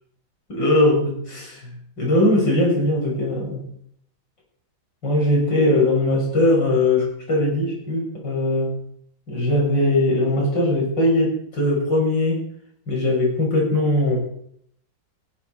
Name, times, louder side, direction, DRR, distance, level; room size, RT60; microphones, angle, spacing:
voice 1, 0.5-1.6 2.0-3.7 5.0-8.7 9.3-12.4 12.9-14.2, left 1 dB, 85° left, -2 dB, 7.4 m, -20 dB
19.0 x 16.5 x 4.6 m, 0.67 s
omnidirectional pair, 1.9 m